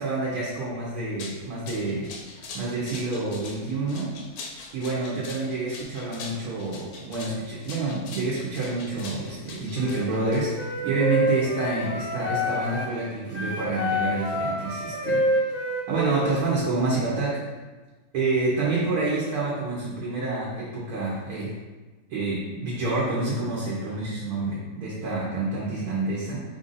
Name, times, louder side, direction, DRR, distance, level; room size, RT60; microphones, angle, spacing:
voice 1, 0.0-2.1 2.5-4.1 4.7-15.5 15.9-17.4 18.1-21.5 22.1-26.4, right 3 dB, 85° right, -6 dB, 1.4 m, -28 dB
sound 1, 0.9-10.8, left 3 dB, 80° left, 1.1 m, -42 dB
Wind instrument woodwind instrument, 9.7-12.9 13.3-16.7, left 1 dB, 40° left, 0.6 m, -28 dB
4.4 x 2.5 x 3.9 m, 1.3 s
omnidirectional pair, 1.6 m